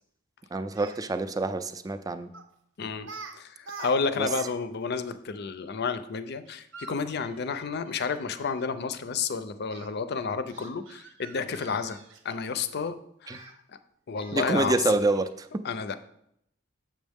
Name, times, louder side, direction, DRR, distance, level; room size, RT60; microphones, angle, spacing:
voice 1, 0.5-2.3 4.2-4.3 13.3-13.4 14.3-15.6, right 2 dB, 20° right, 10 dB, 0.4 m, -27 dB
Speech, 0.6-1.0 2.3-2.5 3.0-3.3 3.6-4.5 4.8-4.9 6.5-8.6 9.7-9.9 10.5-12.6 13.3-13.5 14.2-14.5, right 4 dB, 80° right, 1.0 m, -46 dB
voice 2, 2.8-3.1 3.3-13.0 13.2-13.5 14.1-14.9 15.6-15.9, left 5 dB, 55° left, 11 dB, 0.5 m, -31 dB
7.4 x 6.3 x 3.5 m, 0.73 s
head